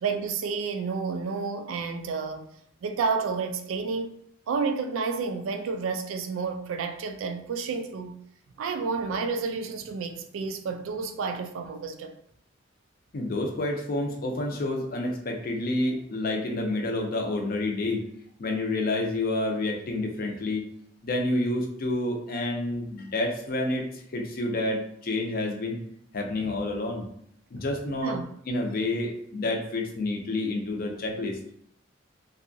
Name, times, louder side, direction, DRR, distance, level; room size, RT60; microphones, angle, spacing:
voice 1, 0.0-2.5 2.8-4.2 4.5-8.2 8.6-12.1 28.0-28.2, right 5 dB, 85° right, 0.3 m, -30 dB
voice 2, 13.1-18.0 18.4-20.7 21.0-25.8 26.1-27.1 27.5-28.2 28.5-31.4, left 2 dB, 50° left, 0.5 m, -29 dB
2.7 x 2.3 x 2.6 m
head